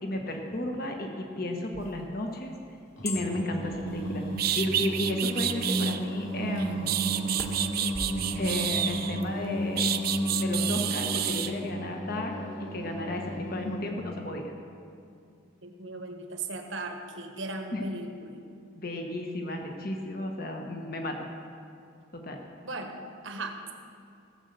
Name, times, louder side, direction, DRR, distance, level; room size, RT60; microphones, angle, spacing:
voice 1, 0.0-2.5 3.0-4.2 4.6-7.0 8.4-9.9 10.4-14.5 17.7-17.8 18.7-21.2 22.1-22.4, left 1 dB, 45° left, 2 dB, 1.4 m, -33 dB
sound 1, 1.7-8.2, left 2 dB, 15° left, 1.2 m, -44 dB
Singing, 3.0-14.1, equal, 60° left, 3.5 m, -33 dB
sound 2, 4.0-4.1 4.4-6.0 6.6-9.2 9.8-11.5, right 11 dB, 45° right, 0.5 m, -29 dB
voice 2, 15.6-18.4 22.6-22.9 23.2-23.6, right 2 dB, 70° right, 4 dB, 1.4 m, -37 dB
17.0 x 8.0 x 6.8 m, 2.5 s
head